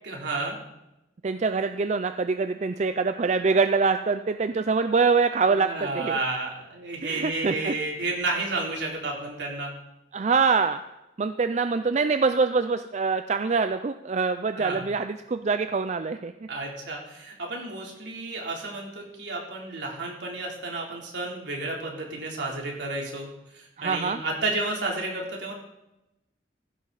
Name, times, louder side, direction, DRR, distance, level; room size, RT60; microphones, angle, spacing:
voice 1, 0.0-0.6 5.4-9.7 14.5-14.8 16.5-23.3 23.5-25.5, right 2 dB, 70° right, -2 dB, 3.4 m, -31 dB
voice 2, 1.2-6.2 7.0-7.7 10.1-10.8 11.2-16.3 23.8-24.2, right 4 dB, 40° right, 9 dB, 0.4 m, -24 dB
15.5 x 11.5 x 4.1 m, 0.94 s
head